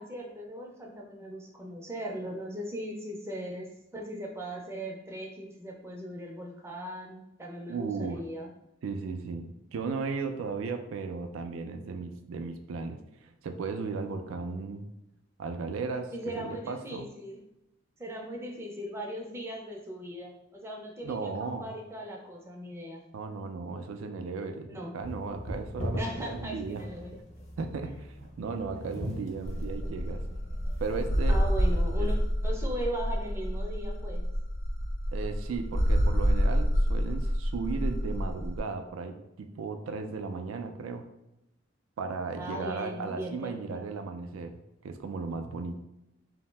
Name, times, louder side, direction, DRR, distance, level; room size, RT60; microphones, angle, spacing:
voice 1, 0.0-8.5 16.1-17.4 18.0-23.0 24.7-25.0 25.9-27.2 31.3-32.2 32.4-34.3 42.4-43.8, equal, 15° right, -1 dB, 0.4 m, -38 dB
voice 2, 7.7-8.2 8.8-14.9 15.4-16.1 16.4-17.1 21.0-21.7 23.1-26.8 27.6-30.2 30.8-31.4 32.0-32.1 35.1-41.1 42.0-44.5 44.8-45.8, right 4 dB, 85° right, 7 dB, 0.3 m, -36 dB
sound 1, 25.0-32.8, equal, 35° left, 0.5 m, -41 dB
sound 2, 29.4-38.6, equal, 90° left, 0.6 m, -28 dB
2.6 x 2.0 x 3.2 m, 0.90 s
head